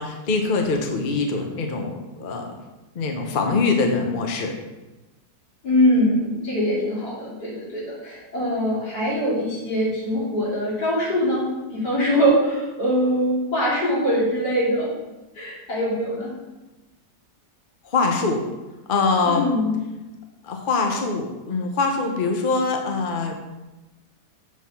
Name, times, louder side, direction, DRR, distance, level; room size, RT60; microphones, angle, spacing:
voice 1, 0.0-1.9 2.2-2.5 2.9-4.5 17.8-18.4 18.9-19.4 20.4-23.3, left 4 dB, 40° left, 3 dB, 0.8 m, -23 dB
voice 2, 5.6-11.4 11.7-14.9 15.4-16.3 19.2-19.8, equal, 80° left, -7 dB, 3.4 m, -22 dB
7.3 x 4.1 x 5.7 m, 1.1 s
omnidirectional pair, 1.7 m